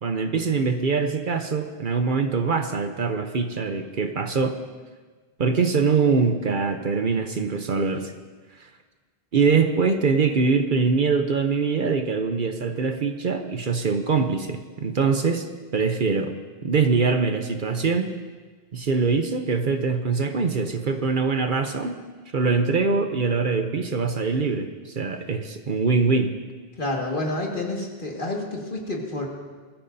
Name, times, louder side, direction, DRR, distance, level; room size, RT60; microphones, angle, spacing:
voice 1, 0.0-4.6 5.4-8.1 9.3-15.5 15.7-16.3 16.6-18.2 18.7-22.0 22.3-26.4, right 4 dB, 55° right, 7 dB, 0.9 m, -23 dB
voice 2, 26.8-29.3, left 2 dB, 50° left, -1 dB, 2.0 m, -29 dB
21.5 x 14.0 x 2.7 m, 1.4 s
omnidirectional pair, 1.1 m